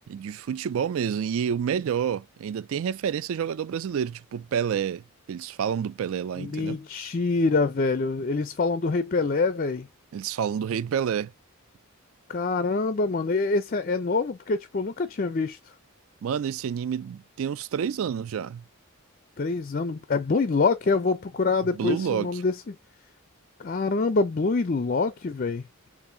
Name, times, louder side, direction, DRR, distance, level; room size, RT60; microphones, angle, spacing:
voice 1, 0.1-5.0 5.3-6.8 10.1-11.3 16.2-18.6 21.6-22.4, right 8 dB, 65° right, 0.3 m, -29 dB
voice 2, 6.4-9.9 12.3-15.6 19.4-22.8 23.6-25.6, left 3 dB, 40° left, 0.4 m, -25 dB
6.9 x 2.5 x 2.6 m
head